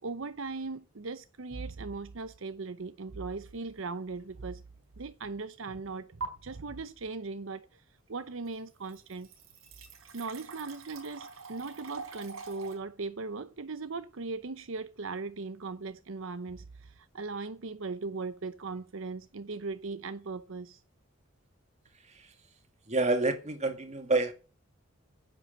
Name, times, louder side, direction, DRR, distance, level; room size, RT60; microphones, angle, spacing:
voice 1, 0.0-4.6 5.0-9.3 10.1-20.8, right 3 dB, 70° right, 0.8 m, -39 dB
sound 1, 3.4-3.7 4.2-4.3 6.2-6.3 8.1-8.2 8.5-12.8, right 4 dB, 90° right, 4.1 m, -44 dB
voice 2, 22.0-22.3 22.9-24.3, right 3 dB, 35° right, 2.1 m, -28 dB
10.5 x 8.0 x 7.9 m
head